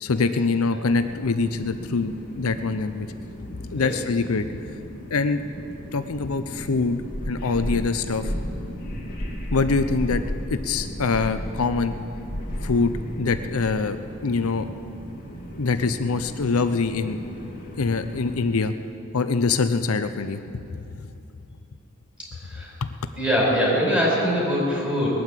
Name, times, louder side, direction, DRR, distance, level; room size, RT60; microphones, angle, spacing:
voice 1, 0.0-3.1 3.7-4.5 5.1-5.4 5.9-7.0 7.3-8.3 9.5-10.2 10.5-11.9 12.6-14.7 15.6-17.2 17.7-18.7 19.1-20.4 21.0-21.1 22.8-22.9, left 4 dB, 90° left, 10 dB, 0.7 m, -24 dB
sound 1, 0.8-18.4, equal, 45° left, 2.7 m, -35 dB
voice 2, 22.2-22.7 23.2-25.1, equal, 5° right, -5 dB, 5.1 m, -23 dB
20.0 x 9.4 x 7.5 m, 2.6 s
head